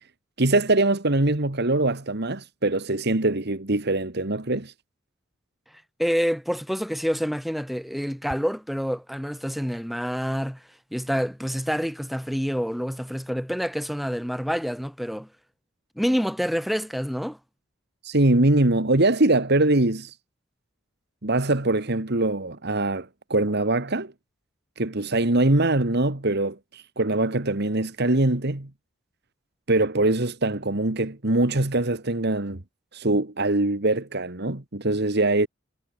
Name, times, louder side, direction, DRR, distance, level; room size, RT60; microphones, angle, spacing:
voice 1, 0.4-4.7 18.0-20.1 21.2-24.1 24.8-28.7 29.7-32.6 32.9-35.5, right 2 dB, 55° right, 2.0 m, -23 dB
voice 2, 6.0-10.6 10.9-15.3 16.0-17.4, equal, ahead, 7.2 m, -27 dB
head